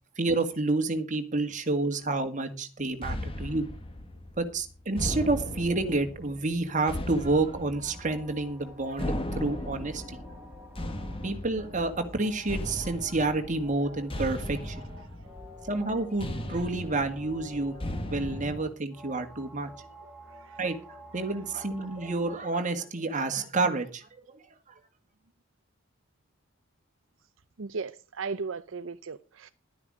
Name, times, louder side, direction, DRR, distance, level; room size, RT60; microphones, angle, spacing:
voice 1, 0.2-3.7 4.4-10.2 11.2-14.9 15.6-17.8 18.1-19.7 20.6-20.8 21.1-24.1, right 2 dB, 40° right, 2.0 m, -29 dB
sound 1, 3.0-18.6, left 1 dB, 30° left, 1.7 m, -37 dB
sound 2, 7.8-22.4, left 1 dB, 10° right, 3.7 m, -49 dB
voice 2, 15.0-15.3 20.4-20.6 27.6-29.5, right 4 dB, 75° right, 0.7 m, -37 dB
12.0 x 9.9 x 4.9 m
head